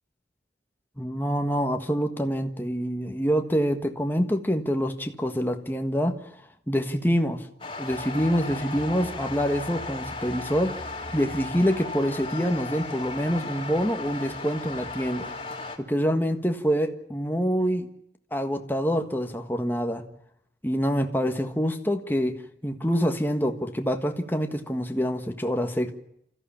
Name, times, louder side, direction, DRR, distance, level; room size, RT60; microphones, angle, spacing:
voice 1, 1.0-6.2 6.7-7.5 7.8-10.8 11.1-15.3 15.8-17.9 18.3-20.1 20.6-25.9, equal, 10° left, 5 dB, 1.6 m, -26 dB
sound 1, 7.6-15.8, left 2 dB, 30° left, 2.7 m, -36 dB
28.0 x 14.5 x 8.6 m, 0.76 s
head